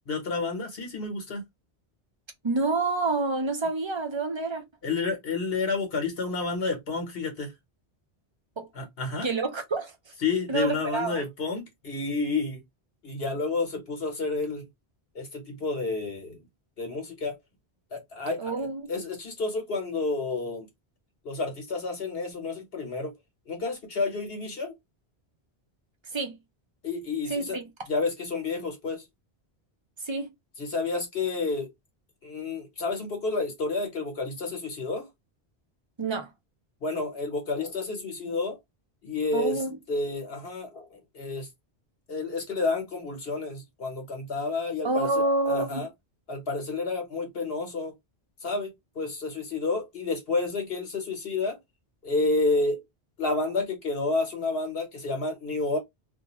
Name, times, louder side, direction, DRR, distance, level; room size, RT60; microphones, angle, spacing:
voice 1, 0.1-1.4 4.8-7.5 8.7-9.3 10.2-12.6 13.0-14.7 15.1-16.4 16.8-17.4 17.9-20.7 21.2-23.2 23.5-24.7 26.8-27.6 27.9-29.1 30.6-31.7 32.2-35.1 36.8-38.6 39.0-39.6 39.9-41.5 42.1-45.9 46.3-47.9 48.4-51.6 52.0-52.8 53.2-55.8, left 3 dB, 65° left, 1.1 m, -30 dB
voice 2, 2.4-4.6 8.6-8.7 9.2-9.9 10.5-11.2 18.4-18.8 26.1-26.4 27.3-27.6 30.0-30.3 36.0-36.3 39.3-39.8 44.8-45.9, right 3 dB, 35° right, 0.6 m, -27 dB
2.3 x 2.2 x 2.9 m
omnidirectional pair, 1.1 m